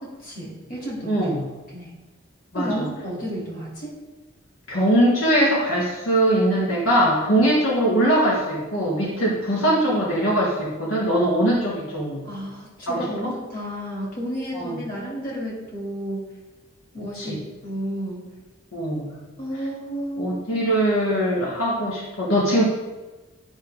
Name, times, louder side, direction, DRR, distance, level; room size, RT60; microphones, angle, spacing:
voice 1, 0.0-1.3 1.7-1.9 2.5-3.9 12.3-16.3 16.9-18.3 19.4-20.5, equal, 40° left, -4 dB, 2.8 m, -32 dB
voice 2, 1.1-1.4 2.5-2.9 4.7-12.2 12.9-13.3 14.5-14.8 17.1-17.4 18.7-19.1 20.2-22.6, right 1 dB, 80° left, -5 dB, 1.8 m, -21 dB
11.5 x 5.7 x 3.6 m, 1.2 s
head